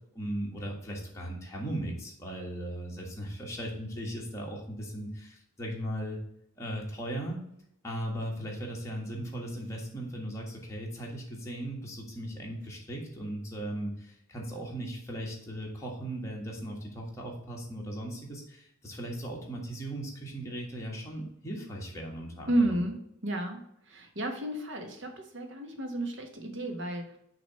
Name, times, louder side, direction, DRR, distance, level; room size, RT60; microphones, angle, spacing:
voice 1, 0.1-6.2 6.6-7.4 7.8-22.6, right 1 dB, 15° left, -2 dB, 1.4 m, -37 dB
voice 2, 22.5-27.1, right 1 dB, 60° right, 4 dB, 1.1 m, -32 dB
6.3 x 3.0 x 5.5 m, 0.76 s
head